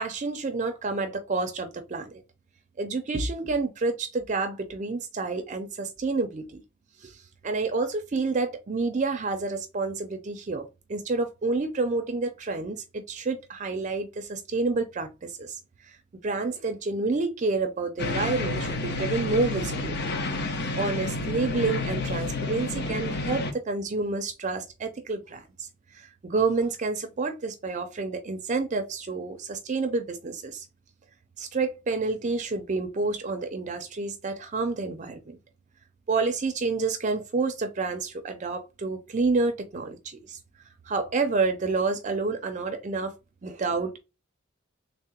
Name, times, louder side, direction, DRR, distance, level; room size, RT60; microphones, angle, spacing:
voice 1, 0.0-2.2 2.8-6.6 7.0-16.0 16.2-20.0 20.7-30.7 31.4-35.4 36.1-40.4 40.9-43.1 43.4-43.9, right 3 dB, 35° right, 0.4 m, -29 dB
sound 1, 18.0-23.5, left 2 dB, 55° left, 0.6 m, -30 dB
3.6 x 2.1 x 4.2 m
head